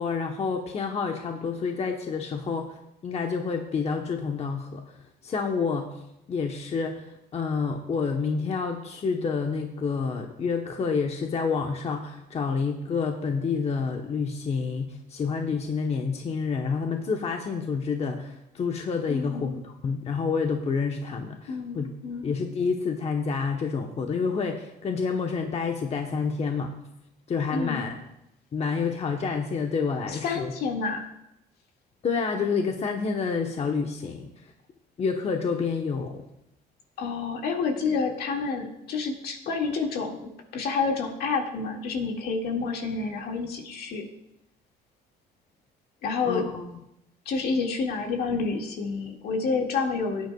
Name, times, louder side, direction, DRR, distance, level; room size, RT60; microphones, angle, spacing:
voice 1, 0.0-2.8 3.0-5.0 5.2-6.0 6.3-21.9 22.2-26.7 27.3-28.0 28.5-30.5 32.0-34.5 35.0-36.2 46.2-46.7, left 5 dB, 40° left, 3 dB, 1.0 m, -28 dB
voice 2, 19.1-19.5 21.5-22.3 27.5-27.9 30.0-31.1 37.0-44.0 46.0-46.5 47.3-50.3, left 4 dB, 70° left, 1 dB, 2.0 m, -29 dB
17.0 x 9.4 x 2.3 m, 0.84 s
cardioid pair, 110°, 17 cm